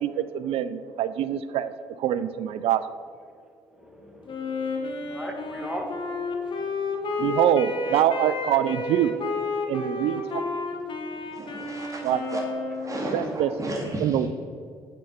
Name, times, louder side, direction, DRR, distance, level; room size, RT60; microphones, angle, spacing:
voice 1, 0.0-1.7 2.0-2.8 7.2-9.1 9.7-10.4 12.0-12.4 13.1-13.5 14.0-14.3, right 10 dB, 70° right, 13 dB, 0.4 m, -24 dB
voice 2, 3.8-5.9, equal, 5° right, 1 dB, 1.6 m, -38 dB
Wind instrument woodwind instrument, 4.3-13.1, left 3 dB, 50° left, 1.2 m, -31 dB
voice 3, 11.3-12.4 12.8-14.2, right 1 dB, 30° right, -2 dB, 1.9 m, -33 dB
8.4 x 4.3 x 5.1 m, 2.2 s
supercardioid pair, 60°, 10 cm